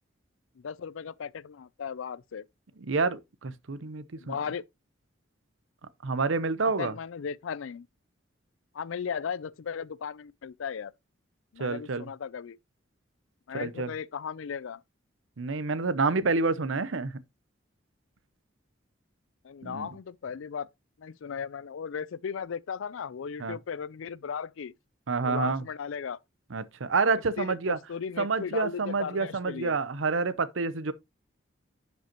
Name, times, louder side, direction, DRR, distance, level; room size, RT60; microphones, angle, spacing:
voice 1, 0.6-2.4 4.2-4.6 6.6-7.9 8.7-10.9 11.5-12.6 13.5-14.8 19.4-20.7 21.0-24.7 25.2-26.2 27.4-27.6 27.9-29.8, left 6 dB, 85° left, 0.4 m, -36 dB
voice 2, 2.9-4.4 6.0-6.9 11.6-12.1 13.5-13.9 15.4-17.1 19.6-19.9 23.4-23.6 25.1-25.6 26.5-27.8 28.2-30.9, right 4 dB, 85° right, 0.7 m, -28 dB
10.5 x 5.3 x 2.9 m
head